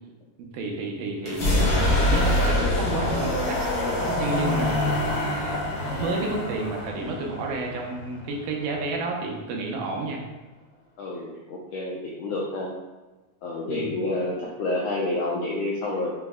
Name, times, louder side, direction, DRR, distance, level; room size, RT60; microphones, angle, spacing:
voice 1, 0.4-3.6 4.2-10.2 13.7-13.9, right 3 dB, 85° right, 0 dB, 2.2 m, -30 dB
sound 1, 1.2-8.9, left 1 dB, 60° left, 1.3 m, -25 dB
voice 2, 11.0-12.7 13.4-16.1, left 2 dB, 85° left, -3 dB, 1.4 m, -29 dB
5.6 x 2.1 x 3.5 m, 1.2 s
omnidirectional pair, 3.5 m